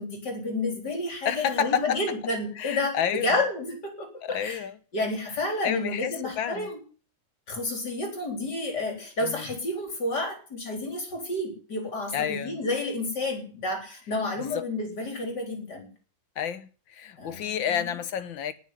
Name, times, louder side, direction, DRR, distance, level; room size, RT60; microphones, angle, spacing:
voice 1, 0.0-4.6 4.9-6.8 7.5-15.9 17.2-17.9, left 2 dB, 60° left, 4.8 m, -30 dB
voice 2, 1.2-2.0 2.6-3.4 4.2-4.8 5.6-6.7 9.2-9.4 12.1-12.6 14.5-14.6 16.4-18.5, left 9 dB, 90° left, 1.9 m, -30 dB
19.0 x 7.1 x 9.4 m
omnidirectional pair, 2.0 m